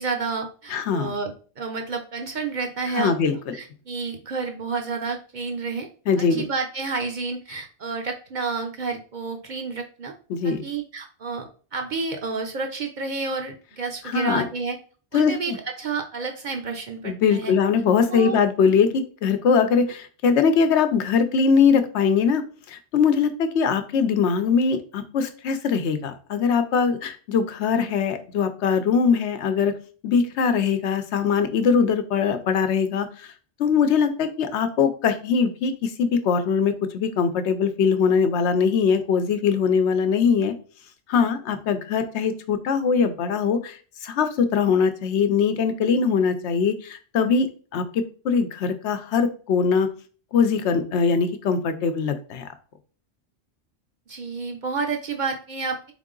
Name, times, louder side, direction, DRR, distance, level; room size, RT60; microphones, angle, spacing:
voice 1, 0.0-5.9 6.2-10.1 10.4-14.8 15.1-17.5 18.1-18.4 54.1-55.9, right 4 dB, 55° right, 4 dB, 0.6 m, -30 dB
voice 2, 0.7-1.1 2.9-3.6 6.1-6.4 10.3-10.6 14.0-14.4 15.1-15.6 17.0-22.4 22.7-29.7 30.0-33.3 33.6-40.5 41.1-49.9 50.3-52.4, left 6 dB, 80° left, 9 dB, 0.9 m, -22 dB
3.7 x 3.6 x 3.8 m, 0.40 s
omnidirectional pair, 1.2 m